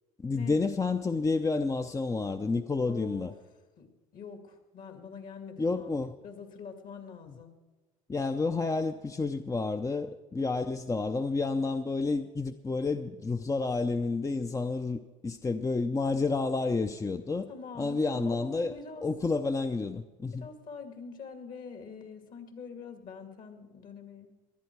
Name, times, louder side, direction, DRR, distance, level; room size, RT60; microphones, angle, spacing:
voice 1, 0.2-3.3 5.6-6.1 7.3-7.4 8.1-17.5 17.8-18.8 19.0-20.5, left 3 dB, 20° left, 8 dB, 0.6 m, -30 dB
voice 2, 2.9-3.3 3.8-3.9 4.1-6.0 6.2-7.6 17.5-19.1 20.3-24.3, left 5 dB, 55° left, 6 dB, 2.3 m, -45 dB
19.0 x 11.5 x 4.6 m, 1.2 s
supercardioid pair, 75°, 17 cm